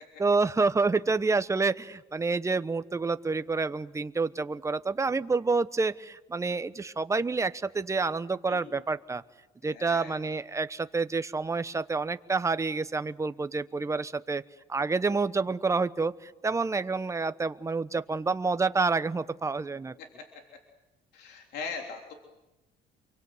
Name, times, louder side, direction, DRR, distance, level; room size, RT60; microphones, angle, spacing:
voice 1, 0.2-9.2 9.6-14.4 14.7-16.1 16.4-19.9, right 4 dB, 15° right, 12 dB, 1.0 m, -28 dB
voice 2, 9.6-10.2 21.1-22.1, left 4 dB, 75° left, 2 dB, 3.5 m, -39 dB
28.5 x 23.5 x 8.0 m, 1.0 s
cardioid pair, 110°, 17 cm